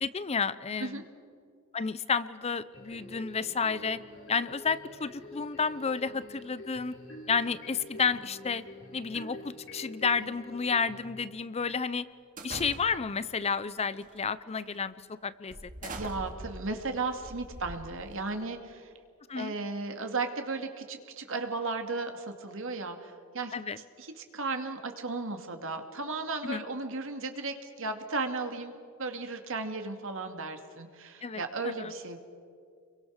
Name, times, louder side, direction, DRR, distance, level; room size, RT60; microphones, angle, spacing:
voice 1, 0.0-1.0 1.7-4.0 4.3-6.9 7.3-8.6 8.9-12.0 12.4-15.6 15.8-15.9 19.3-19.5 23.5-23.8 26.4-26.6 31.2-31.9, left 5 dB, 30° left, 16 dB, 0.6 m, -31 dB
sound 1, 2.7-11.0, left 2 dB, 65° left, 7.0 m, -47 dB
sound 2, 12.4-13.2 14.0-14.3 14.7-14.8 15.5-18.4, right 2 dB, 40° right, 2.4 m, -43 dB
voice 2, 15.9-18.9 19.3-23.5 24.0-28.7 29.0-32.2, right 3 dB, 65° right, 5 dB, 2.5 m, -35 dB
30.0 x 23.0 x 6.6 m, 2.2 s
head